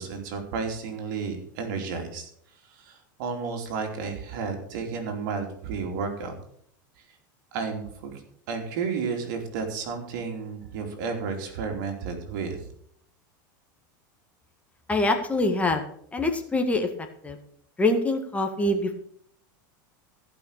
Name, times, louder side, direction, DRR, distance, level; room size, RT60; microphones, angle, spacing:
voice 1, 0.0-2.3 2.7-6.4 7.5-8.2 8.5-12.7, right 5 dB, 70° right, 4 dB, 2.9 m, -32 dB
voice 2, 14.9-15.8 16.1-16.9 17.2-17.4 17.8-19.0, left 2 dB, 10° left, 4 dB, 1.7 m, -24 dB
15.0 x 5.8 x 6.6 m, 0.66 s
supercardioid pair, 115°, 11 cm